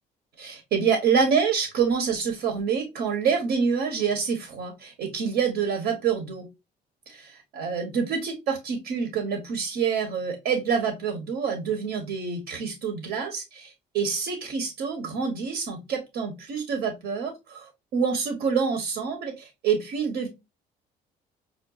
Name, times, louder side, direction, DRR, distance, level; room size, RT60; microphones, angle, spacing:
voice 1, 0.4-6.5 7.1-20.3, right 6 dB, 80° right, 4 dB, 1.0 m, -27 dB
5.7 x 2.2 x 2.3 m, 0.23 s
cardioid pair, 110°, 17 cm